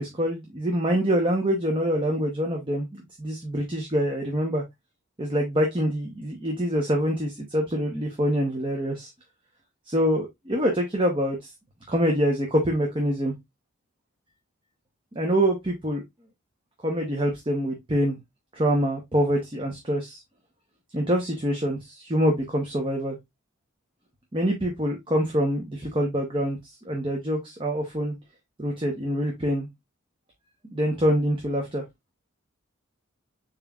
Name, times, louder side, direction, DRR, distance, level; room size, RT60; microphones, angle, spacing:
voice 1, 0.0-4.6 5.2-9.1 9.9-11.5 11.9-13.3 15.1-16.0 16.8-18.2 18.5-20.2 20.9-23.2 24.3-26.6 26.8-28.1 28.6-29.7 30.7-31.8, equal, 25° right, 0.9 m, -25 dB
7.0 x 3.2 x 2.4 m
head